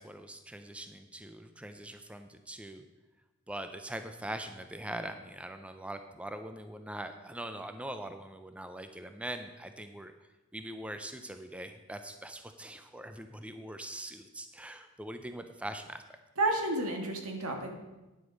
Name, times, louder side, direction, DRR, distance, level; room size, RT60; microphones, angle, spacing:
voice 1, 0.0-2.8 3.5-10.1 10.5-16.0, right 1 dB, 5° right, 8 dB, 0.5 m, -42 dB
voice 2, 16.4-17.7, right 2 dB, 90° right, 3 dB, 1.7 m, -31 dB
10.0 x 8.1 x 5.2 m, 1.1 s
head